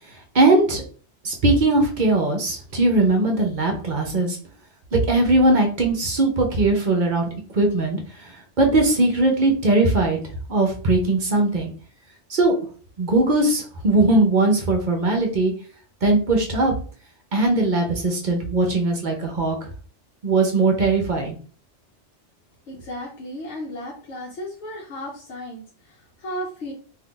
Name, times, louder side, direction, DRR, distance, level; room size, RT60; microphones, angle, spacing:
voice 1, 0.3-0.8 1.2-4.4 4.9-10.2 10.5-11.7 12.3-12.6 13.0-15.5 16.0-16.7 17.3-19.6 20.2-21.4, right 2 dB, 50° right, 2 dB, 0.7 m, -20 dB
voice 2, 22.7-26.7, equal, 70° left, -3 dB, 1.0 m, -34 dB
2.6 x 2.5 x 3.6 m, 0.41 s
omnidirectional pair, 1.2 m